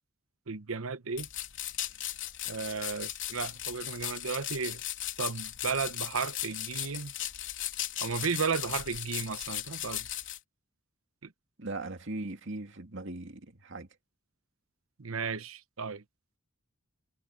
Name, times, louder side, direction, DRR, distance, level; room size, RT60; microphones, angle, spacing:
voice 1, 0.5-1.3 2.5-4.8 5.2-7.1 8.0-10.1 15.0-16.0, right 5 dB, 80° right, 1.0 m, -34 dB
sound 1, 1.2-10.4, left 13 dB, 60° left, 3.7 m, -37 dB
voice 2, 11.6-13.9, right 2 dB, 60° right, 2.3 m, -39 dB
head